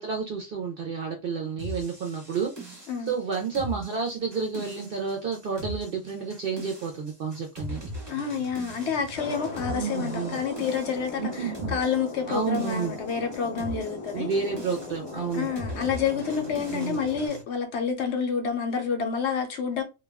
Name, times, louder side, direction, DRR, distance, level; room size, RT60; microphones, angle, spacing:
voice 1, 0.0-7.8 9.7-10.4 11.2-11.8 12.3-13.0 14.1-15.5 16.7-17.0, right 5 dB, 65° right, 0.6 m, -30 dB
sound 1, 1.6-17.4, equal, 20° right, 0.9 m, -40 dB
voice 2, 8.1-14.3 15.3-19.8, left 6 dB, 65° left, 0.8 m, -29 dB
Thunder, 9.1-17.3, left 3 dB, 40° left, 0.5 m, -38 dB
2.3 x 2.1 x 3.3 m
omnidirectional pair, 1.4 m